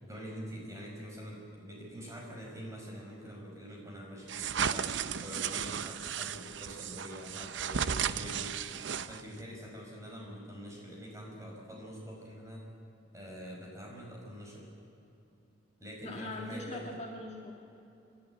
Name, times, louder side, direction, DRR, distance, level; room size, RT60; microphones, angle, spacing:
voice 1, 0.0-12.7 13.1-14.7 15.8-16.9, equal, 15° right, -2 dB, 5.4 m, -45 dB
sound 1, 4.3-9.4, right 7 dB, 65° right, 0.6 m, -35 dB
voice 2, 16.0-17.5, left 2 dB, 35° left, 0 dB, 1.7 m, -41 dB
26.5 x 12.0 x 9.3 m, 2.9 s
head